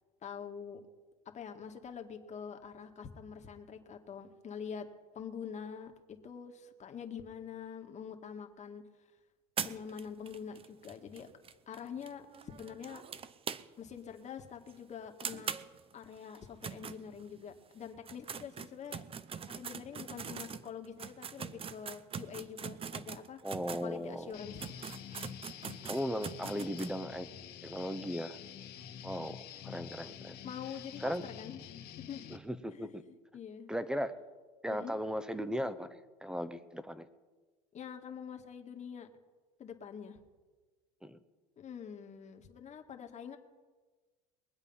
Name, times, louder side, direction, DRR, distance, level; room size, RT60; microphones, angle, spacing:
voice 1, 0.2-0.9 1.3-4.9 5.1-8.8 9.6-11.3 11.7-13.0 13.8-15.5 15.9-19.0 19.3-23.4 23.8-24.7 30.4-32.4 32.7-33.7 34.7-35.0 37.7-39.1 39.6-40.2 41.6-43.4, left 7 dB, 35° left, 4 dB, 1.9 m, -45 dB
sound 1, 9.6-14.0 14.3-14.4 14.7-14.8 15.2-17.5 17.9-23.9 24.3-24.4 24.6-26.9, right 7 dB, 30° right, 0.8 m, -43 dB
voice 2, 23.4-24.3 25.8-27.3 27.6-28.4 29.0-30.4 31.0-31.2 32.3-33.0 33.7-34.1 34.6-37.1 41.0-41.2, equal, 5° right, 13 dB, 1.0 m, -37 dB
Guitar, 24.3-32.4, left 9 dB, 55° left, 1.9 m, -48 dB
22.5 x 8.1 x 5.6 m, 1.3 s
supercardioid pair, 90°, 20 cm